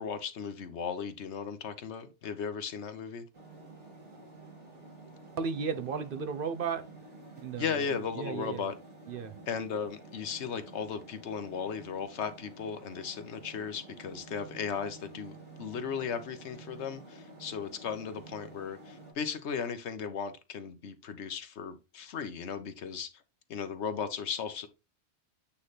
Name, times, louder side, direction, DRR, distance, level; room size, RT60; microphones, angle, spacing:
voice 1, 0.0-3.2 7.6-8.7 9.5-23.1 23.5-24.7, left 6 dB, 75° left, 1.2 m, -36 dB
sound 1, 3.3-19.1, right 3 dB, 85° right, 3.0 m, -50 dB
voice 2, 5.4-6.8 7.4-8.7 9.1-9.3, right 6 dB, 55° right, 0.9 m, -35 dB
8.5 x 3.3 x 4.0 m
omnidirectional pair, 1.2 m